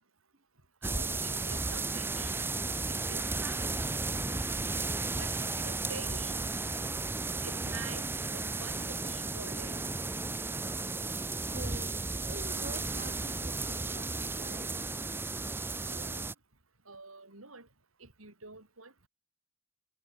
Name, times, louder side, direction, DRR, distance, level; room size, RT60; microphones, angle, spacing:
sound 1, 0.8-16.3, right 3 dB, 10° right, 0.5 m, -34 dB
voice 1, 0.8-2.4 2.9-4.2 5.1-6.4 7.4-8.0 8.3-9.8 15.7-16.3 16.9-17.7 18.0-19.1, right 4 dB, 90° right, 5.9 m, -47 dB
Wind instrument woodwind instrument, 5.4-13.3, left 2 dB, 40° left, 5.9 m, -66 dB
voice 2, 11.5-15.0, right 2 dB, 45° right, 2.4 m, -47 dB
head